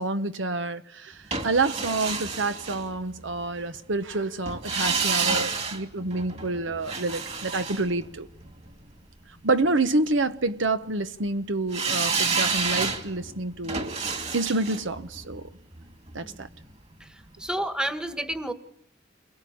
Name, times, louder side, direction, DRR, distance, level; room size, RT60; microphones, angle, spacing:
voice 1, 0.0-8.3 9.4-14.0 14.3-15.5 16.1-16.5, right 2 dB, 80° right, 1.2 m, -28 dB
sound 1, 1.3-3.4 4.5-8.7 11.7-16.7 17.0-17.1, right 4 dB, 35° right, 2.7 m, -30 dB
voice 2, 17.4-18.5, right 1 dB, 5° right, 1.4 m, -30 dB
29.5 x 22.5 x 8.8 m
head